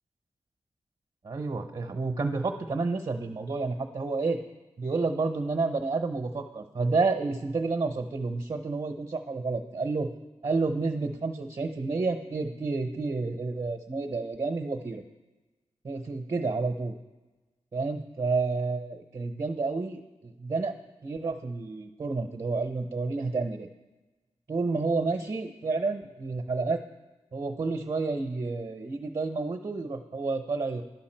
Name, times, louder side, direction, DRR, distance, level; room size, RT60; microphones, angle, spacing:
voice 1, 1.2-4.4 4.8-10.1 10.4-15.0 15.8-16.9 17.7-20.7 21.0-23.7 24.5-26.8 27.3-30.8, right 3 dB, 45° right, 4 dB, 0.8 m, -30 dB
10.5 x 5.8 x 4.4 m, 1.2 s
cardioid pair, 45°, 12 cm